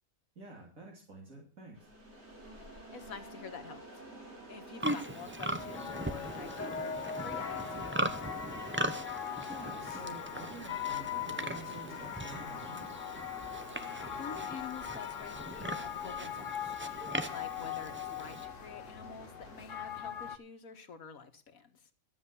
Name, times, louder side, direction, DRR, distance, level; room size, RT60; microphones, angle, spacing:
voice 1, 0.4-1.9 9.5-13.0, right 2 dB, 75° right, -1 dB, 3.5 m, -49 dB
sound 1, 1.7-19.8, right 2 dB, 55° right, 3.6 m, -50 dB
voice 2, 2.6-7.7 14.2-21.9, left 6 dB, 85° left, 7 dB, 1.8 m, -48 dB
Livestock farm animals working animals, 4.8-18.5, right 1 dB, 10° right, 0.6 m, -40 dB
sound 2, 5.5-20.4, left 9 dB, 65° left, 1.2 m, -41 dB
13.0 x 7.9 x 7.0 m, 0.39 s
omnidirectional pair, 1.4 m